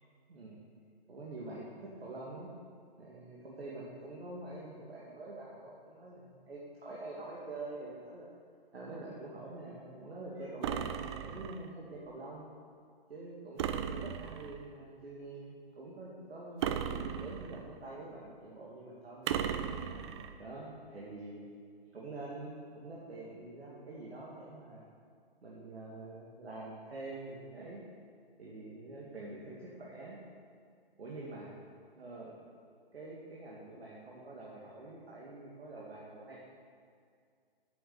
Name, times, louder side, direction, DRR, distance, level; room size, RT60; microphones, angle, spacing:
voice 1, 1.1-2.5 3.0-8.3 8.7-12.4 13.1-16.7 17.1-19.3 19.9-21.4 21.9-24.8 25.4-27.8 28.4-30.2 31.0-31.5 31.9-32.3 32.9-36.4, right 2 dB, 85° right, -5 dB, 2.2 m, -46 dB
sound 1, 10.6-11.7 13.6-14.6 16.6-17.7 19.3-20.3, right 8 dB, 30° right, 0.4 m, -36 dB
9.0 x 7.8 x 7.0 m, 2.2 s
hypercardioid pair, 135°, 30 cm